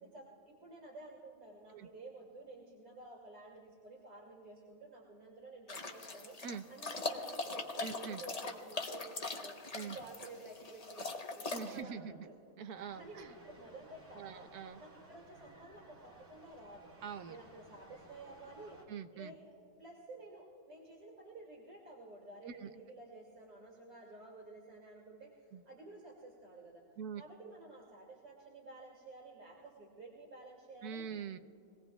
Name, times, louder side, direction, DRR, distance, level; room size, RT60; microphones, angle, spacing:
voice 1, 0.0-6.4 6.7-12.3 12.9-14.5 14.8-16.9 17.3-18.8 19.1-19.4 19.8-26.8 27.2-31.1, right 2 dB, 65° right, -4 dB, 2.8 m, -52 dB
sound 1, 5.7-11.8, left 3 dB, 30° left, 0.8 m, -41 dB
voice 2, 7.8-8.2 9.7-10.0 11.5-12.3 12.6-13.3 14.2-14.8 17.0-17.4 18.9-19.3 22.5-22.7 25.5-25.6 27.0-27.2 30.8-31.4, right 7 dB, 85° right, 10 dB, 1.2 m, -44 dB
sound 2, 12.7-18.8, right 1 dB, 40° right, 3.2 m, -58 dB
23.5 x 18.0 x 2.3 m, 2.7 s
omnidirectional pair, 1.6 m